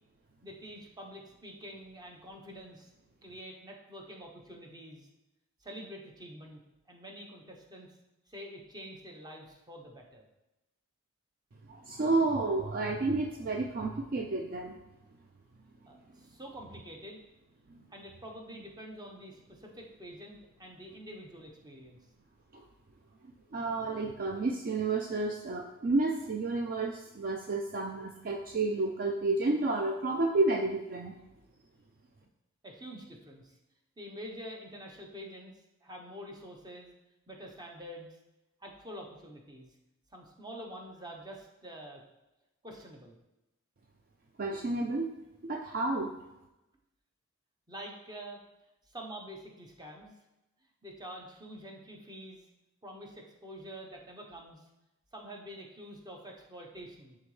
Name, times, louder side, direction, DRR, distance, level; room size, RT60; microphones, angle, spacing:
voice 1, 0.4-2.9 3.2-5.1 5.6-6.6 6.9-8.0 8.3-10.2 15.9-17.2 17.9-22.0 32.6-33.6 34.0-35.5 35.8-36.9 37.3-38.1 38.6-39.7 40.1-42.0 42.6-43.1 47.7-48.4 48.9-50.1 50.8-52.4 52.8-54.7 55.1-57.2, equal, 20° right, 0 dB, 0.9 m, -46 dB
voice 2, 11.7-14.8 17.7-17.8 22.5-22.6 23.5-31.1 44.4-45.1 45.4-46.1, right 3 dB, 40° right, 2 dB, 0.4 m, -31 dB
11.0 x 3.8 x 3.2 m, 0.96 s
head